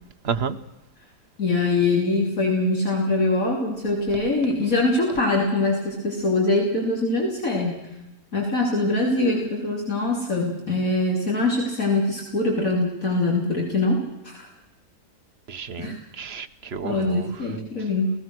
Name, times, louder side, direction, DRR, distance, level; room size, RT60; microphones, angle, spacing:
voice 1, 0.2-0.6 15.5-17.3, right 6 dB, 45° right, 1.2 m, -31 dB
voice 2, 1.4-7.8 8.3-14.0 14.2-14.5 15.8-16.0 16.8-18.1, left 2 dB, 55° left, 3.4 m, -23 dB
28.5 x 18.5 x 6.2 m
omnidirectional pair, 1.7 m